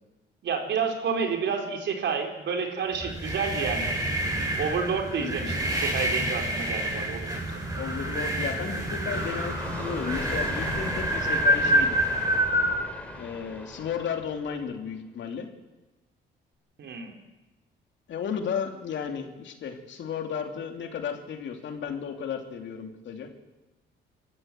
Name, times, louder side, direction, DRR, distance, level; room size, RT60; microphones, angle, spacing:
voice 1, 0.4-3.9 4.6-7.2 16.8-17.1, right 5 dB, 65° right, 3 dB, 4.1 m, -29 dB
sound 1, 3.0-12.7, right 1 dB, 20° right, 7.4 m, -27 dB
voice 2, 5.2-5.5 7.7-12.0 13.1-15.5 18.1-23.3, left 7 dB, 70° left, 4 dB, 3.1 m, -34 dB
sound 2, 9.1-14.8, left 1 dB, 5° left, 3.3 m, -38 dB
25.5 x 14.0 x 7.8 m, 1.1 s
cardioid pair, 90°, 20 cm